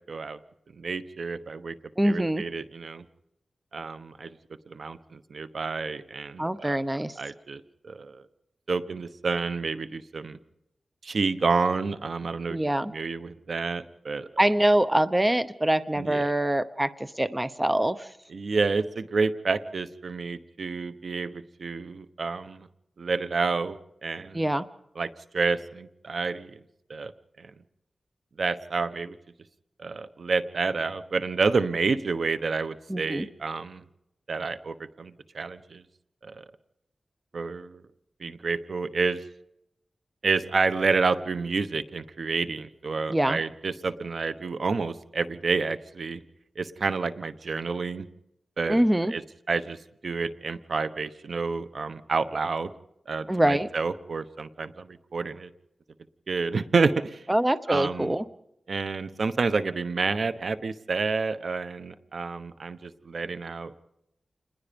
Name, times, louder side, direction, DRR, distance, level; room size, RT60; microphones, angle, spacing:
voice 1, 0.1-0.4 0.8-1.7 2.0-3.0 3.7-4.4 4.7-6.8 7.2-8.2 8.7-10.4 11.0-12.6 12.9-14.3 16.0-16.3 18.3-22.7 23.0-23.8 24.0-24.5 25.0-26.6 26.9-27.1 27.4-27.5 28.4-29.2 29.8-33.8 34.3-35.8 36.2-36.4 37.3-37.8 38.2-39.2 40.2-46.2 46.6-48.1 48.6-48.8 49.1-49.2 49.5-49.8 50.0-52.7 53.1-55.5 56.3-57.2 57.7-58.2 58.7-63.7, right 4 dB, 70° right, 12 dB, 1.1 m, -29 dB
voice 2, 2.0-2.4 6.4-7.1 12.5-12.9 14.4-18.1 24.3-24.6 32.9-33.3 43.1-43.4 48.7-49.1 53.3-53.7 57.3-58.2, right 1 dB, 15° right, 13 dB, 0.9 m, -24 dB
28.0 x 20.5 x 5.3 m, 0.83 s
cardioid pair, 65°, 0 cm